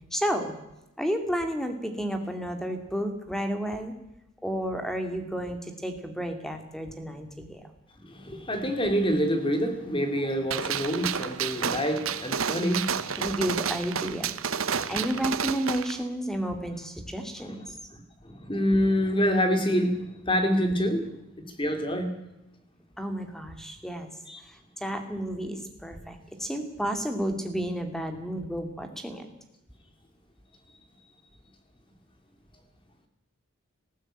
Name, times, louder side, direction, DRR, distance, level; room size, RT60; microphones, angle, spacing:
voice 1, 0.1-0.6 1.0-3.9 4.4-7.6 13.2-14.3 14.6-17.8 23.0-24.1 24.4-29.3, equal, ahead, 6 dB, 2.3 m, -31 dB
voice 2, 8.0-13.2 14.7-15.0 17.4-17.5 17.9-21.1 21.4-22.1 24.3-24.4, equal, 25° left, 6 dB, 2.8 m, -27 dB
Gunshot gunfire, 10.5-16.0, right 7 dB, 75° right, 1.0 m, -30 dB
19.5 x 15.0 x 9.0 m, 0.89 s
head